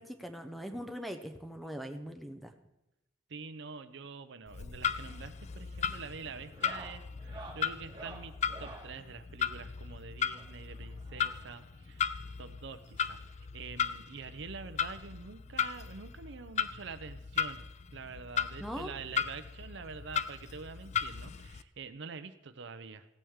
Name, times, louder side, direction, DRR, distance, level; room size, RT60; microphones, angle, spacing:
voice 1, 0.0-2.5 18.6-18.9, equal, ahead, 7 dB, 0.6 m, -41 dB
voice 2, 3.3-8.3 8.6-12.1 12.4-13.2 13.5-17.6 17.9-23.1, right 5 dB, 65° right, 12 dB, 0.6 m, -46 dB
Clock, 4.5-21.6, left 8 dB, 35° left, 0.3 m, -37 dB
sound 1, 4.9-5.2 5.5-5.9 6.4-8.9 10.3-11.6 12.7-12.8 13.0-13.1 13.6-13.7 15.0-15.1 16.4-16.5, right 2 dB, 25° right, 1.5 m, -50 dB
16.0 x 8.6 x 3.6 m, 0.91 s
head